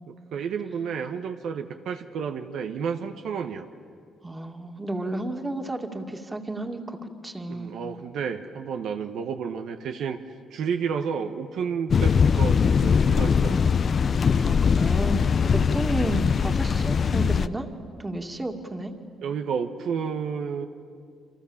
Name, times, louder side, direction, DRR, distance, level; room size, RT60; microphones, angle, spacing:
voice 1, 0.1-3.7 7.5-10.2 10.5-13.7 19.2-20.7, right 6 dB, 75° right, 6 dB, 1.2 m, -31 dB
voice 2, 4.2-7.7 14.4-15.3 15.5-17.7 18.0-18.9, right 2 dB, 15° right, 4 dB, 2.4 m, -32 dB
sound 1, 11.9-17.5, left 6 dB, 45° left, 0.6 m, -21 dB
29.0 x 25.5 x 7.3 m, 2.3 s
cardioid pair, 90°, 0 cm